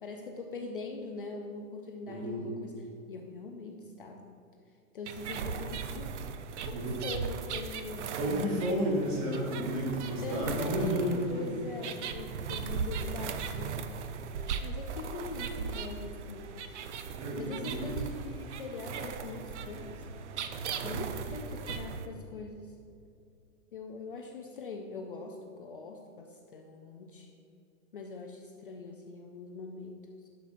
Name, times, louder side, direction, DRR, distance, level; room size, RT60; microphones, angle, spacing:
voice 1, 0.0-4.2 4.9-6.1 6.7-8.1 10.2-13.8 14.6-16.5 17.4-20.1 20.8-22.7 23.7-27.3 27.9-30.3, left 3 dB, 40° left, 2 dB, 0.4 m, -42 dB
voice 2, 2.1-2.5 6.7-7.0 8.1-11.4 17.2-17.8, equal, 25° right, -2 dB, 1.2 m, -31 dB
sound 1, 5.1-22.1, right 6 dB, 55° right, 0.5 m, -38 dB
11.0 x 6.5 x 2.5 m, 2.6 s
hypercardioid pair, 175°, 41 cm